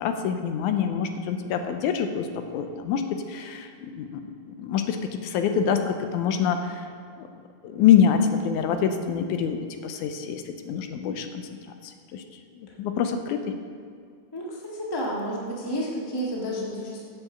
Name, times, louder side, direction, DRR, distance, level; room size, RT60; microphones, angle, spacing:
voice 1, 0.0-2.3 2.5-6.9 7.2-7.3 7.6-11.4 11.8-12.2 12.6-13.6, left 7 dB, 90° left, 7 dB, 2.1 m, -25 dB
voice 2, 14.3-17.0, equal, 20° left, -3 dB, 0.6 m, -31 dB
7.5 x 7.0 x 7.0 m, 2.2 s
omnidirectional pair, 3.5 m